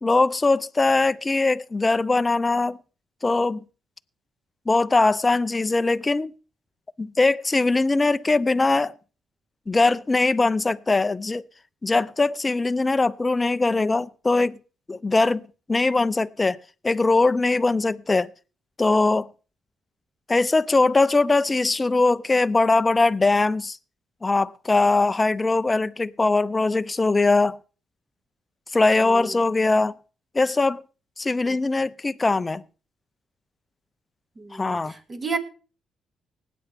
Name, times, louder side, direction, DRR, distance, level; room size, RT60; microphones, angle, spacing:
voice 1, 0.0-2.8 3.2-3.6 4.7-6.3 7.0-8.9 9.7-11.4 11.8-14.6 14.9-15.4 15.7-16.6 16.8-18.3 18.8-19.3 20.3-23.8 24.2-27.6 28.7-29.9 30.3-30.8 31.2-32.6 34.5-34.9, left 3 dB, 20° left, 0.6 m, -21 dB
voice 2, 29.0-29.4 31.5-31.6 34.4-35.4, right 4 dB, 30° right, 2.1 m, -32 dB
19.5 x 9.3 x 3.4 m
cardioid pair, 90°, 0 cm